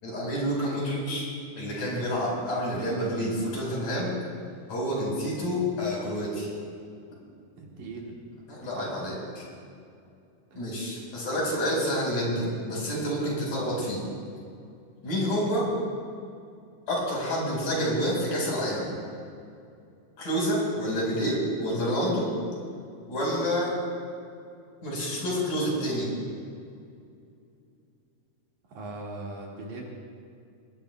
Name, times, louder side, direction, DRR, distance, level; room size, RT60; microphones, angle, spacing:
voice 1, 0.0-1.3 1.6-4.1 4.7-6.5 8.5-9.5 10.6-14.0 15.0-15.7 16.9-18.9 20.2-22.3 23.1-23.7 24.8-26.1, equal, 70° left, -4 dB, 6.3 m, -28 dB
voice 2, 7.6-8.1 8.8-8.9 10.5-10.6 28.7-29.8, right 2 dB, 65° right, -3 dB, 3.3 m, -39 dB
21.5 x 20.0 x 2.3 m, 2.4 s
omnidirectional pair, 3.8 m